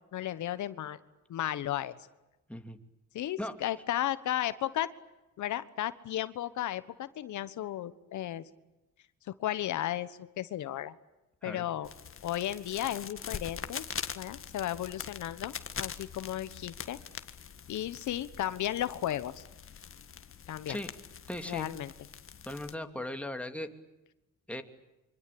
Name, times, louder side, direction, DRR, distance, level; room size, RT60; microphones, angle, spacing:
voice 1, 0.1-1.0 1.3-2.0 3.1-4.9 5.4-8.4 9.3-10.9 11.4-11.9 12.2-13.8 14.1-15.5 15.8-17.0 17.7-19.4 20.5-20.8 21.4-21.9, left 12 dB, 75° left, 14 dB, 1.4 m, -34 dB
sound 1, 11.8-22.7, left 7 dB, 45° left, 1.8 m, -43 dB
voice 2, 21.3-21.7 22.4-23.7 24.5-24.6, left 1 dB, 5° left, 6 dB, 2.8 m, -38 dB
26.0 x 25.0 x 8.8 m, 0.99 s
cardioid pair, 90°, 30 cm